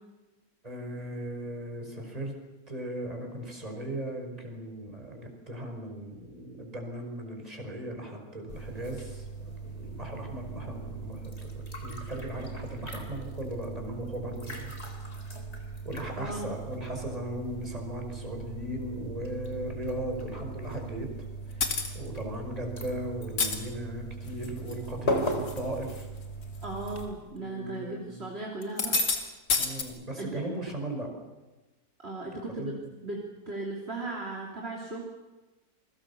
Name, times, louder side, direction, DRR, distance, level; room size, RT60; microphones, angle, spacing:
voice 1, 0.6-2.3 2.7-11.3 11.8-14.7 15.8-21.1 21.5-26.1 27.2-28.2 29.6-31.1 32.3-33.0, right 1 dB, 20° right, 3 dB, 5.2 m, -37 dB
sound 1, 8.5-27.1, right 1 dB, 40° left, 3.9 m, -38 dB
voice 2, 16.2-16.5 26.6-29.0 30.2-30.5 32.0-32.7 33.0-35.0, right 2 dB, 35° right, -2 dB, 3.5 m, -37 dB
sound 2, 21.6-21.9 23.2-23.6 24.3-24.7 25.2-25.6 25.9-26.0 26.9-27.0 28.6-29.2 29.5-29.8, left 4 dB, 90° left, 3.1 m, -28 dB
28.5 x 23.0 x 7.0 m, 1.2 s
omnidirectional pair, 1.8 m